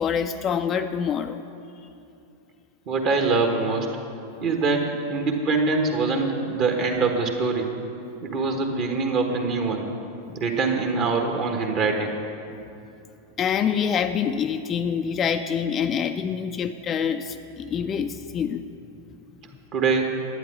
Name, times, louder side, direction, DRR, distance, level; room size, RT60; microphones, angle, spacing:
voice 1, 0.0-1.4 10.3-10.4 13.4-18.6, left 7 dB, 25° left, 8 dB, 0.4 m, -26 dB
voice 2, 2.9-3.9 4.4-7.7 8.2-9.9 10.3-12.2 19.7-20.1, right 4 dB, 40° right, 3 dB, 1.3 m, -24 dB
11.0 x 9.1 x 6.1 m, 2.6 s
figure-of-eight pair, 90°, 0 cm